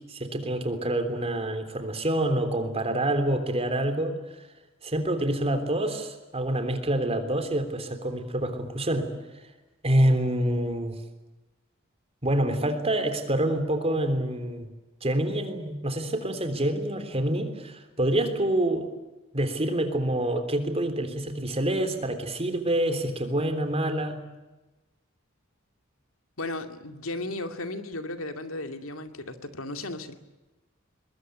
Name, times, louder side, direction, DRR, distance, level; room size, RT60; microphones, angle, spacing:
voice 1, 0.1-4.2 4.8-9.1 9.8-11.0 12.2-14.7 15.0-18.9 19.3-24.2, right 1 dB, 30° right, 8 dB, 3.5 m, -27 dB
voice 2, 26.4-30.1, left 2 dB, 85° left, 7 dB, 2.4 m, -35 dB
23.0 x 21.5 x 9.3 m, 1.1 s
head